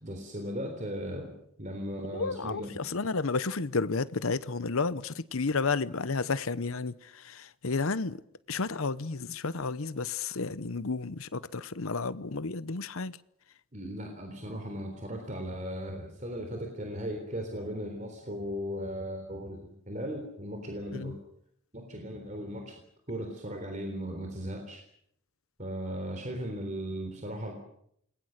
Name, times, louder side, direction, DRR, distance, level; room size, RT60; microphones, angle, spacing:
voice 1, 0.0-1.3 1.6-2.9 13.7-21.2 21.7-22.7 23.1-24.8 25.6-27.5, equal, 35° right, 3.7 m, -37 dB
voice 2, 2.1-8.2 8.5-13.2 20.9-21.1, left 4 dB, 80° left, 0.9 m, -32 dB
28.5 x 21.0 x 6.7 m
head